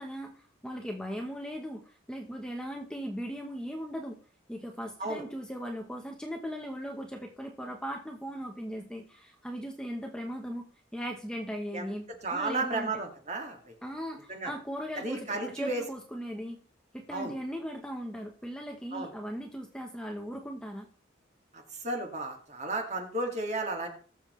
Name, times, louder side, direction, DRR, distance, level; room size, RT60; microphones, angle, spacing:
voice 1, 0.0-4.2 4.5-10.6 10.9-12.9 13.8-16.6 16.9-20.9, equal, 5° left, 2 dB, 1.0 m, -38 dB
voice 2, 12.2-13.7 14.3-14.5 15.0-15.8 17.1-17.3 18.9-19.1 21.5-23.9, right 2 dB, 35° right, 2 dB, 2.2 m, -33 dB
19.5 x 7.1 x 3.2 m, 0.43 s
head